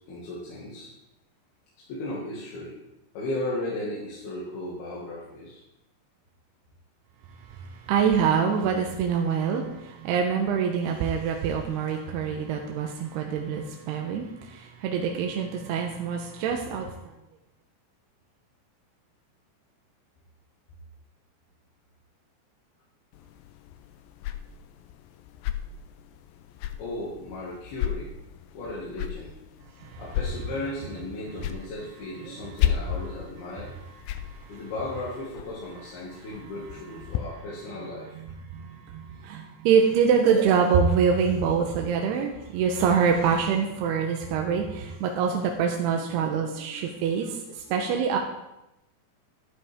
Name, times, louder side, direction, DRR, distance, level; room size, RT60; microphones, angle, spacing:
voice 1, 0.1-0.9 1.9-2.8 3.1-5.6 26.8-28.1 28.5-29.3 30.0-33.7 34.5-38.2 39.1-39.4, left 1 dB, 65° left, -6 dB, 3.9 m, -35 dB
voice 2, 7.3-17.1 29.8-30.0 31.3-31.4 32.2-32.4 34.2-34.6 36.1-36.2 37.1-37.3 38.0-48.2, right 6 dB, 80° right, 2 dB, 2.8 m, -25 dB
sound 1, 23.1-37.2, left 11 dB, 90° left, 2.0 m, -34 dB
12.5 x 11.5 x 3.6 m, 0.90 s
omnidirectional pair, 4.9 m